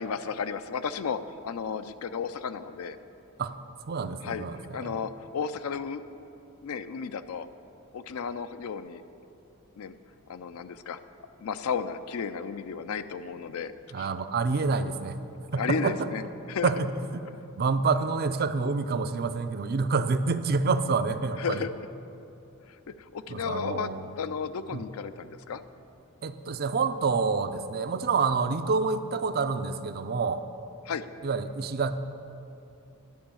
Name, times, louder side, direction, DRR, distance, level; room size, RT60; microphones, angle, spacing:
voice 1, 0.0-3.0 4.2-4.4 4.7-6.0 6.6-7.5 7.9-9.0 9.8-10.0 10.3-11.0 11.4-14.1 15.5-16.2 16.5-16.7 21.4-21.7 22.7-25.6 30.9-31.1, left 6 dB, 75° left, 12 dB, 0.4 m, -33 dB
voice 2, 3.9-5.0 13.9-15.2 15.5-16.1 16.6-17.2 17.6-21.6 23.3-24.1 24.7-24.8 26.2-30.4 31.2-31.9, right 4 dB, 45° right, 11 dB, 0.4 m, -28 dB
10.5 x 5.5 x 8.6 m, 2.7 s
head